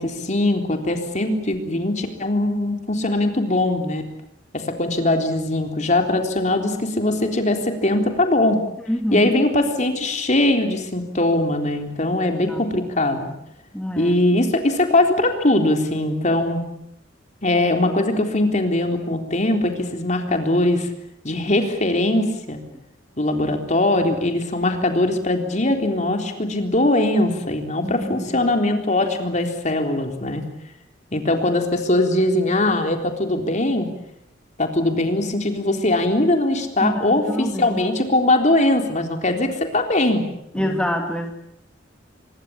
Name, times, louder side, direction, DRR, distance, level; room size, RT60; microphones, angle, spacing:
voice 1, 0.0-4.1 4.5-8.6 9.1-13.3 14.0-16.6 17.4-20.9 21.2-22.6 23.2-30.4 31.1-33.9 34.6-40.3 40.5-40.8, left 1 dB, 40° left, 5 dB, 3.8 m, -21 dB
voice 2, 8.9-9.3 12.2-12.7 13.7-14.2 27.8-28.4 36.8-37.9 40.5-41.3, equal, 5° left, 3 dB, 2.2 m, -26 dB
25.0 x 22.5 x 8.7 m, 0.74 s
head